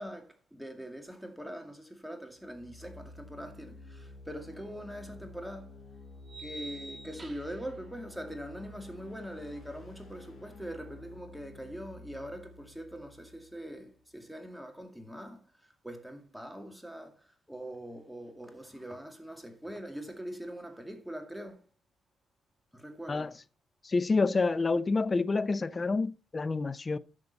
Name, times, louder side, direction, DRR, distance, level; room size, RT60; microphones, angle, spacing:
voice 1, 0.0-5.7 6.4-15.4 15.8-21.6 22.7-23.3, equal, ahead, 2.1 m, -43 dB
sound 1, 2.4-14.1, left 2 dB, 50° left, 4.3 m, -51 dB
sound 2, 4.6-4.7 6.3-7.7, right 2 dB, 25° right, 2.2 m, -46 dB
voice 2, 23.8-27.0, left 3 dB, 30° left, 0.6 m, -28 dB
11.0 x 6.6 x 4.0 m
cardioid pair, 90°, 0 cm